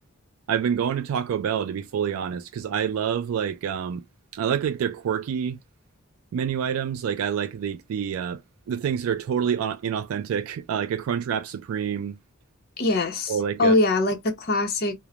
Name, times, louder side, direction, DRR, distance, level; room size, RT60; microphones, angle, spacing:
voice 1, 0.5-4.0 4.3-5.6 6.3-8.4 8.7-12.2 13.3-13.7, right 8 dB, 85° right, 0.3 m, -27 dB
voice 2, 12.8-14.9, left 2 dB, 45° left, 0.8 m, -23 dB
3.0 x 2.0 x 2.4 m
head